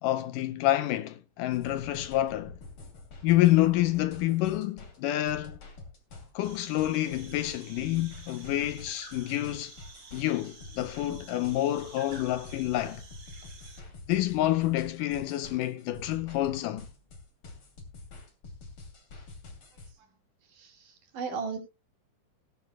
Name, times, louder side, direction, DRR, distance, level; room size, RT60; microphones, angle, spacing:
voice 1, 0.0-2.6 3.2-5.6 6.4-9.7 10.1-13.0 14.1-16.9, left 15 dB, 75° left, 2.1 m, -28 dB
sound 1, 1.5-19.9, left 3 dB, 40° left, 3.2 m, -47 dB
sound 2, 6.4-13.8, right 4 dB, 35° right, 2.7 m, -51 dB
voice 2, 20.5-21.6, right 5 dB, 60° right, 4.1 m, -36 dB
18.0 x 11.0 x 2.2 m
omnidirectional pair, 4.3 m